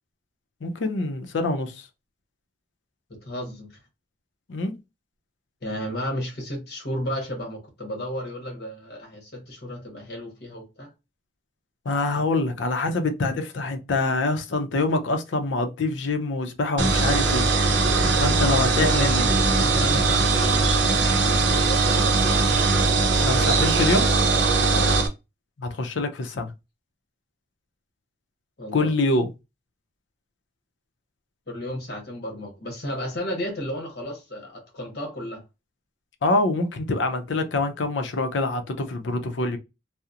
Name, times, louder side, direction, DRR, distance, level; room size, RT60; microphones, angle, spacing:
voice 1, 0.6-1.9 4.5-4.8 11.9-17.5 18.2-19.3 23.2-24.1 25.6-26.5 28.7-29.3 36.2-39.6, left 2 dB, 75° left, 0.5 m, -25 dB
voice 2, 3.2-3.7 5.6-10.9 18.0-22.3 24.7-24.9 28.6-28.9 31.5-35.4, equal, 55° left, 1.0 m, -33 dB
sound 1, 16.8-25.1, right 3 dB, 70° right, 0.6 m, -20 dB
2.7 x 2.0 x 2.4 m
head